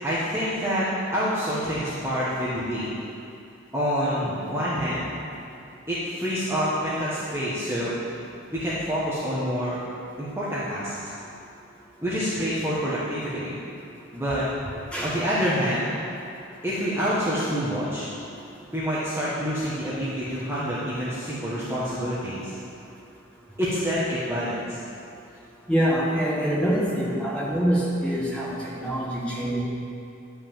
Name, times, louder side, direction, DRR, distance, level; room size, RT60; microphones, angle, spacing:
voice 1, 0.0-2.9 3.7-5.1 5.9-7.9 8.5-9.8 10.2-11.1 12.0-13.6 14.1-14.5 15.0-16.0 16.6-18.0 18.7-22.5 23.6-24.8, equal, 10° right, -10 dB, 1.4 m, -27 dB
voice 2, 14.9-15.2 25.7-29.6, equal, 5° left, -7 dB, 2.1 m, -25 dB
11.0 x 5.7 x 7.4 m, 2.5 s
head